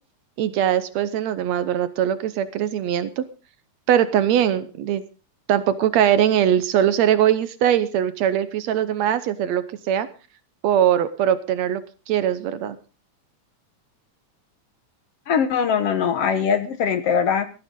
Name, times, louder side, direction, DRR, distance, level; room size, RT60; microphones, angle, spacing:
voice 1, 0.4-3.2 3.9-5.0 5.5-10.1 10.6-11.8 12.1-12.8, right 10 dB, 70° right, 13 dB, 2.0 m, -21 dB
voice 2, 15.3-17.5, left 7 dB, 65° left, 11 dB, 1.9 m, -21 dB
18.0 x 13.5 x 3.8 m, 0.34 s
omnidirectional pair, 3.4 m